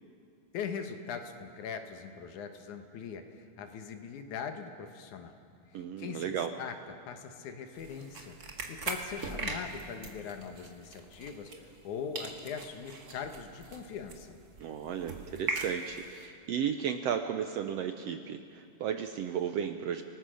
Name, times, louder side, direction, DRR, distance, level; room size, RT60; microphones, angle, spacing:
voice 1, 0.5-5.4 5.7-14.4, left 6 dB, 75° left, 7 dB, 2.7 m, -41 dB
voice 2, 5.7-6.5 14.6-20.0, right 8 dB, 70° right, 7 dB, 1.6 m, -34 dB
sound 1, 7.7-11.9 12.1-16.2, right 3 dB, 35° right, 1.8 m, -40 dB
29.0 x 19.5 x 6.4 m, 2.3 s
omnidirectional pair, 3.6 m